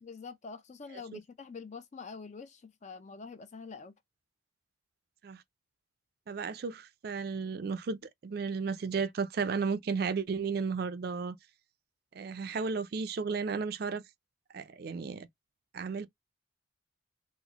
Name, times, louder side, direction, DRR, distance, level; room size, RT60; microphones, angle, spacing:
voice 1, 0.0-3.9, left 5 dB, 35° left, 0.4 m, -45 dB
voice 2, 6.3-11.4 12.1-14.0 14.5-15.3 15.7-16.1, right 5 dB, 50° right, 0.4 m, -34 dB
4.0 x 2.0 x 2.9 m
head